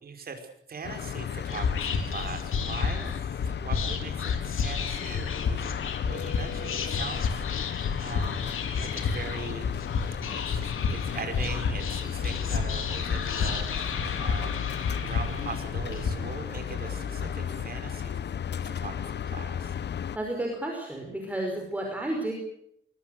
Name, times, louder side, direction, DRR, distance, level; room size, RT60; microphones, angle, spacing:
voice 1, 0.0-3.1 3.4-7.4 8.0-8.5 8.8-9.7 10.2-13.9 14.2-14.7 15.0-18.2 18.6-19.7, right 5 dB, 45° right, 5 dB, 5.4 m, -41 dB
sound 1, 0.8-20.2, left 8 dB, 55° left, 0.8 m, -35 dB
Whispering, 1.5-16.1, left 5 dB, 85° left, 3.9 m, -31 dB
sound 2, 12.1-17.7, right 6 dB, 80° right, 7.3 m, -48 dB
voice 2, 20.1-22.3, right 1 dB, 5° right, 1 dB, 5.2 m, -31 dB
24.0 x 23.5 x 6.7 m, 0.73 s
wide cardioid pair, 170°, 21 cm